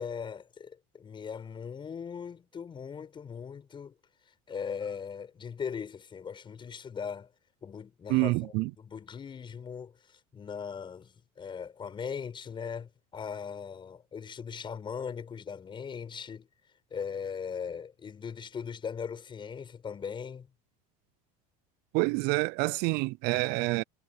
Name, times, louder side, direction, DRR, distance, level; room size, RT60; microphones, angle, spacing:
voice 1, 0.0-3.9 4.5-7.3 7.6-16.5 16.9-20.5, left 6 dB, 25° left, 7.5 m, -39 dB
voice 2, 8.1-8.7 21.9-23.8, right 25 dB, 60° right, 0.5 m, -27 dB
supercardioid pair, 130°, 19 cm